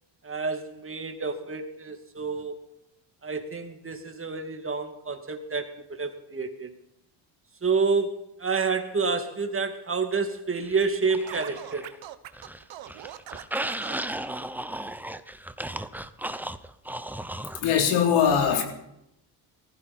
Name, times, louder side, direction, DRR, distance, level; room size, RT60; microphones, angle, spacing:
voice 1, 0.2-2.6 3.2-6.7 7.6-11.9, right 4 dB, 25° right, 5 dB, 2.6 m, -29 dB
sound 1, 10.6-12.0 12.3-17.6, right 1 dB, 5° right, 0.9 m, -35 dB
Scratching (performance technique), 11.3-14.1, right 12 dB, 65° right, 1.4 m, -41 dB
voice 2, 17.5-18.6, left 8 dB, 80° left, 3 dB, 3.8 m, -21 dB
20.0 x 15.5 x 4.4 m, 0.81 s
supercardioid pair, 80°, 49 cm